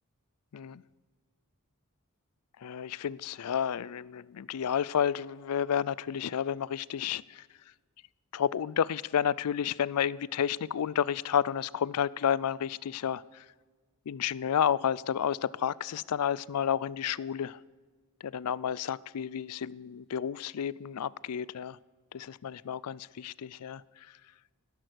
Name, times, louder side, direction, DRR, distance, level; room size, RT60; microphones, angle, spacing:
voice 1, 2.6-7.4 8.3-13.4 14.1-17.6 18.2-21.8 22.1-23.8, left 8 dB, 85° left, 0.4 m, -31 dB
18.0 x 11.0 x 6.3 m
head